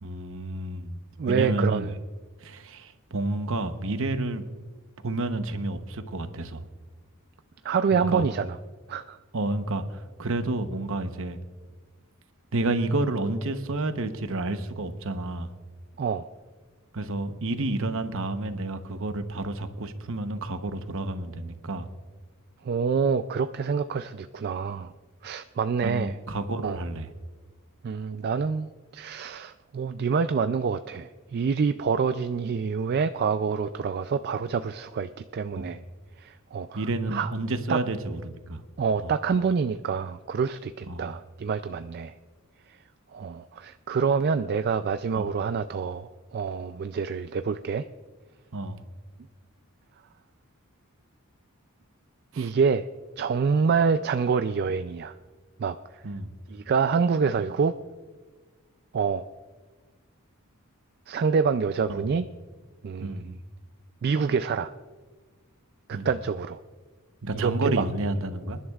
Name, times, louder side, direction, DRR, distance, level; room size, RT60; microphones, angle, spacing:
voice 1, 0.0-1.0 1.3-1.9 2.4-4.4 5.0-6.6 7.9-8.2 9.3-11.4 12.5-15.5 16.9-21.9 25.8-27.1 35.5-35.8 36.7-38.6 39.0-39.1 40.9-41.0 45.1-45.3 48.5-48.8 52.3-52.5 56.0-56.3 61.9-62.1 63.0-63.3 65.9-66.1 67.2-68.6, right 2 dB, 60° right, 9 dB, 0.9 m, -30 dB
voice 2, 1.2-1.9 7.6-8.6 8.9-9.2 16.0-16.2 22.6-24.9 25.2-26.1 26.6-26.8 27.8-35.8 36.2-36.8 37.1-37.3 37.7-37.8 38.8-42.1 43.1-47.8 52.4-52.9 53.2-55.1 55.6-55.8 56.5-57.7 58.9-59.2 61.1-62.3 62.8-63.4 64.0-64.7 65.9-66.6 67.3-67.8, right 5 dB, 45° right, 10 dB, 0.3 m, -26 dB
27.0 x 11.0 x 2.4 m, 1.4 s
head